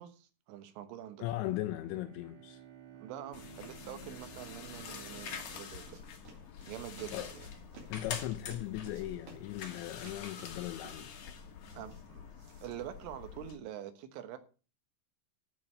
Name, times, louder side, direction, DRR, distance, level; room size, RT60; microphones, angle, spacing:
voice 1, 0.0-1.2 3.0-6.0 6.7-7.5 11.7-12.3 12.6-14.4, right 11 dB, 80° right, 3.7 m, -45 dB
voice 2, 1.2-2.6 7.1-7.3 7.9-11.3, left 15 dB, 80° left, 2.6 m, -38 dB
Bowed string instrument, 1.7-6.6, right 11 dB, 65° right, 4.0 m, -54 dB
sound 1, 3.3-13.6, left 7 dB, 65° left, 2.0 m, -46 dB
sound 2, 4.0-13.7, right 3 dB, 40° right, 3.5 m, -58 dB
12.5 x 5.4 x 6.9 m
omnidirectional pair, 5.7 m